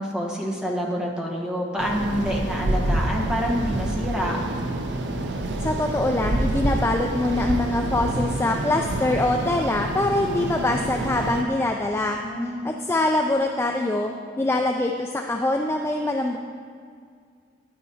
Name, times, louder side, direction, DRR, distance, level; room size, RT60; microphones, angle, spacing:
voice 1, 0.0-4.4 12.2-12.7, equal, 5° right, -2 dB, 1.1 m, -27 dB
sound 1, 1.8-11.4, right 1 dB, 70° right, 0.6 m, -27 dB
voice 2, 5.6-14.1 14.4-16.4, left 2 dB, 15° left, 2 dB, 0.3 m, -24 dB
10.5 x 9.9 x 2.8 m, 2.1 s
head